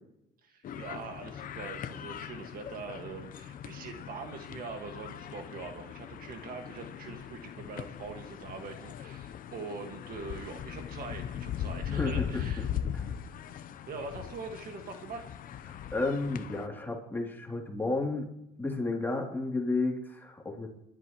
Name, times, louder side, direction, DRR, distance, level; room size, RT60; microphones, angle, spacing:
voice 1, 0.4-12.7 13.5-15.4, right 4 dB, 60° right, 5 dB, 1.7 m, -43 dB
sound 1, 0.6-16.7, left 9 dB, 55° left, 0.7 m, -40 dB
voice 2, 11.9-12.4 12.9-13.0 15.7-18.3 18.6-20.7, left 3 dB, 10° left, -1 dB, 2.8 m, -32 dB
29.5 x 11.5 x 3.1 m, 0.85 s
cardioid pair, 110°, 17 cm